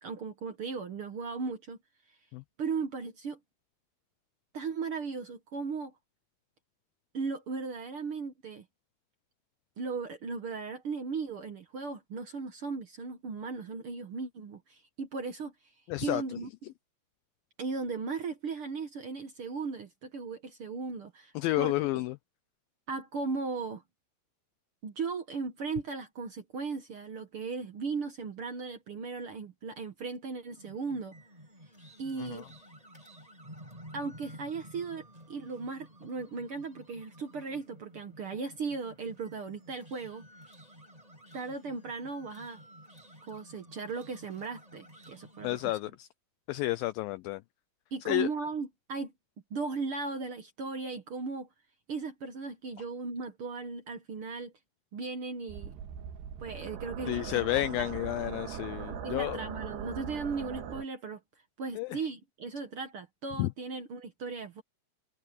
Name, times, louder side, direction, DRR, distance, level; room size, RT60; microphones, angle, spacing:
voice 1, 0.0-1.8 2.6-3.4 4.5-5.9 7.1-8.6 9.8-15.5 16.0-16.5 17.6-21.7 22.9-23.8 24.8-31.1 32.0-32.5 33.9-35.0 35.3-40.2 41.3-42.6 43.2-45.7 47.9-49.1 49.5-51.5 51.9-54.5 54.9-55.7 56.4-57.9 59.0-61.2 61.6-64.6, right 4 dB, 65° right, 1.3 m, -37 dB
voice 2, 15.9-16.4 21.4-22.2 32.2-32.5 45.4-46.1 46.5-47.4 48.1-48.3 57.1-59.4 61.8-62.0 63.4-63.5, left 17 dB, 85° left, 2.0 m, -31 dB
sound 1, 30.5-45.8, equal, 10° right, 6.6 m, -53 dB
sound 2, 55.5-60.8, right 8 dB, 85° right, 4.0 m, -40 dB
omnidirectional pair, 4.6 m